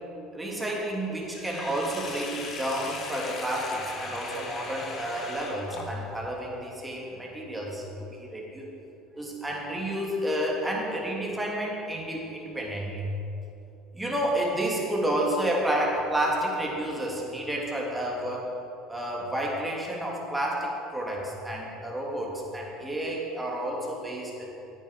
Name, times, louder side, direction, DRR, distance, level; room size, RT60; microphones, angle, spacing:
voice 1, 0.3-8.7 9.1-13.1 13.9-18.5 18.9-24.5, right 1 dB, 10° right, -3 dB, 2.6 m, -30 dB
Sink (filling or washing), 1.3-6.3, left 3 dB, 40° left, 1.6 m, -39 dB
10.0 x 9.0 x 5.0 m, 2.9 s
hypercardioid pair, 75°, 0 cm